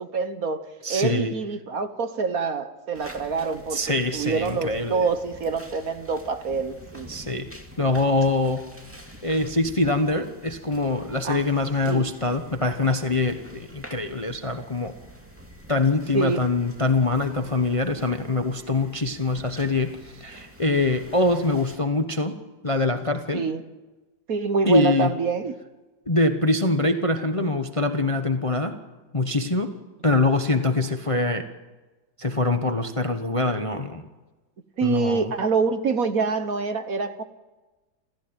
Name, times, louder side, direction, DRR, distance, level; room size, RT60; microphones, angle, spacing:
voice 1, 0.0-7.2 11.2-11.5 11.8-12.0 16.1-16.5 23.3-23.6 24.3-25.5 34.8-37.2, right 5 dB, 50° right, 1.4 m, -26 dB
voice 2, 0.8-1.3 3.7-5.0 7.1-7.5 7.8-8.7 9.2-14.9 15.7-22.4 22.6-23.4 24.6-25.1 26.1-28.8 29.1-29.7 30.0-31.4 32.2-34.0 34.8-35.3, left 2 dB, 20° left, 0.9 m, -24 dB
sound 1, 2.9-21.8, equal, 5° right, 2.3 m, -47 dB
28.0 x 15.0 x 9.1 m
omnidirectional pair, 2.1 m